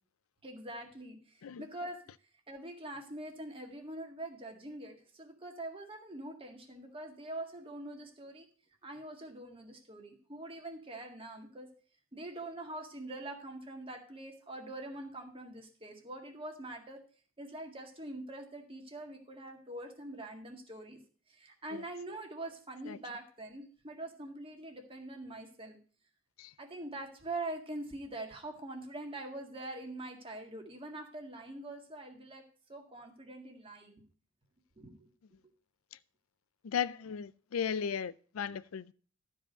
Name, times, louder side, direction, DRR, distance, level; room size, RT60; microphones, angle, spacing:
voice 1, 0.4-2.0 2.5-8.5 8.8-11.7 12.1-17.0 17.4-21.0 21.3-25.8 26.6-32.4 32.7-34.0 34.8-35.1, right 2 dB, 25° right, 1.9 m, -44 dB
voice 2, 36.6-38.9, left 7 dB, 75° left, 0.4 m, -36 dB
12.5 x 5.0 x 6.5 m
head